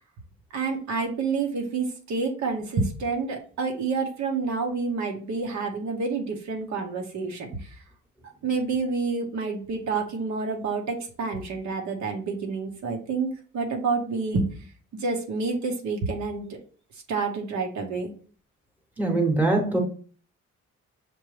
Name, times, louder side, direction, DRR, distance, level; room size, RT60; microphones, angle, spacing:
voice 1, 0.5-7.8 8.4-14.5 15.0-16.5 17.1-18.1, right 4 dB, 70° right, 2 dB, 0.8 m, -28 dB
voice 2, 19.0-19.8, right 2 dB, 5° right, 3 dB, 1.0 m, -22 dB
6.0 x 2.2 x 3.1 m, 0.43 s
cardioid pair, 90°, 30 cm